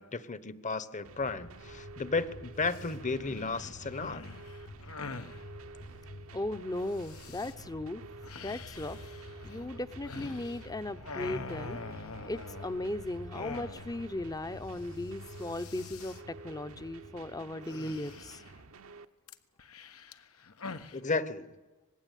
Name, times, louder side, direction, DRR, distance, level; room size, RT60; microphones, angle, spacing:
voice 1, 0.0-4.2 20.9-21.6, left 3 dB, 35° left, 1.1 m, -34 dB
sound 1, 1.0-19.0, right 4 dB, 70° right, 1.1 m, -52 dB
sound 2, 1.2-18.0, left 1 dB, 65° left, 2.0 m, -50 dB
sound 3, 2.6-2.9 3.3-5.4 6.9-7.5 8.2-10.7 11.0-12.9 13.3-14.1 14.4-14.5 14.7-15.0 15.3-16.2 17.7-18.6 19.3-21.0, left 3 dB, 85° left, 1.3 m, -45 dB
voice 2, 6.3-8.0 8.4-9.0 9.4-11.8 12.2-18.4, left 1 dB, 20° left, 0.8 m, -37 dB
25.5 x 20.0 x 9.2 m
head